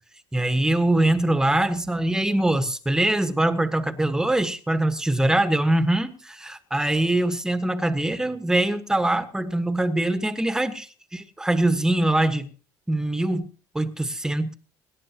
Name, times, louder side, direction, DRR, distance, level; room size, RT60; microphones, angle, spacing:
voice 1, 0.3-12.5 12.9-13.5 13.7-14.5, right 1 dB, 5° right, 1.4 m, -23 dB
25.5 x 10.5 x 2.9 m
cardioid pair, 115°, 9 cm